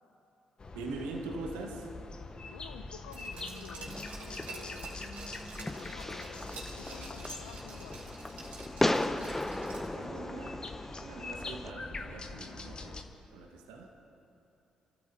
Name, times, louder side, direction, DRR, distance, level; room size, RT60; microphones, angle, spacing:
sound 1, 0.6-13.0, left 3 dB, 40° left, 1.2 m, -44 dB
voice 1, 0.7-1.9 9.6-10.7 11.0-13.0 13.3-13.9, right 3 dB, 80° right, 1 dB, 1.4 m, -42 dB
voice 2, 2.5-5.0 5.6-8.2, left 11 dB, 80° left, 11 dB, 0.5 m, -52 dB
Glass, 3.1-10.1 10.4-10.5, right 3 dB, 65° right, 3.4 m, -48 dB
Fireworks, 3.9-11.7, left 1 dB, 15° left, 0.7 m, -37 dB
28.0 x 13.5 x 2.8 m, 2.8 s
hypercardioid pair, 45°, 2 cm